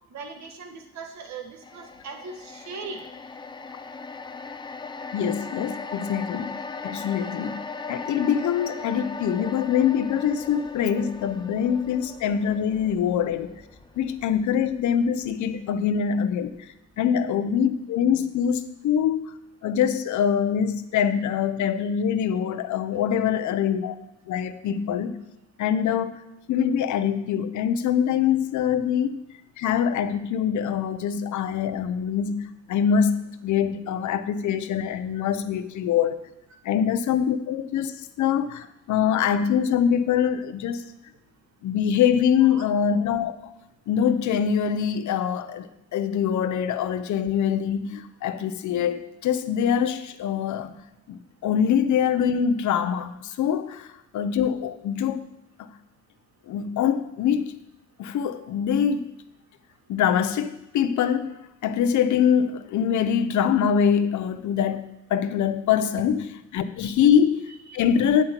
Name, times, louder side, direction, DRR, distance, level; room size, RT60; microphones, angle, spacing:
voice 1, 0.1-3.0 42.5-42.6 66.8-67.1, right 4 dB, 65° right, 1.5 m, -39 dB
sound 1, 1.6-16.0 16.3-16.5, left 4 dB, 15° left, 0.5 m, -39 dB
voice 2, 5.1-6.6 6.8-7.6 7.9-13.6 14.0-16.6 17.0-19.3 19.6-24.0 24.3-25.1 25.6-26.2 26.5-29.2 29.6-36.2 36.6-40.8 41.6-43.5 43.9-50.8 51.1-53.9 54.1-55.2 56.5-57.5 58.0-59.1 59.9-61.3 61.6-66.2 66.5-68.2, left 8 dB, 75° left, 0.8 m, -24 dB
8.4 x 7.8 x 4.4 m
cardioid pair, 90°, 30 cm